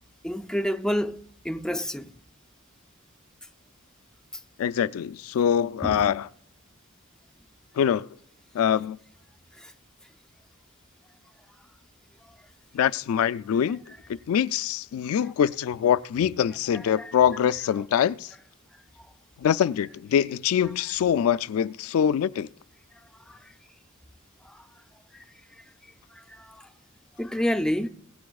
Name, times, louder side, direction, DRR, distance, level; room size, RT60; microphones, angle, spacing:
voice 1, 0.2-2.1 5.8-6.1 9.6-9.7 16.7-17.1 19.0-19.1 23.3-23.5 24.4-24.7 25.1-25.2 26.1-26.7 27.2-27.9, equal, 5° left, 0.4 m, -30 dB
voice 2, 4.6-6.3 7.8-8.1 8.5-9.0 12.7-13.8 14.3-18.3 19.4-22.5, left 8 dB, 80° left, 0.3 m, -24 dB
21.5 x 9.3 x 2.3 m
head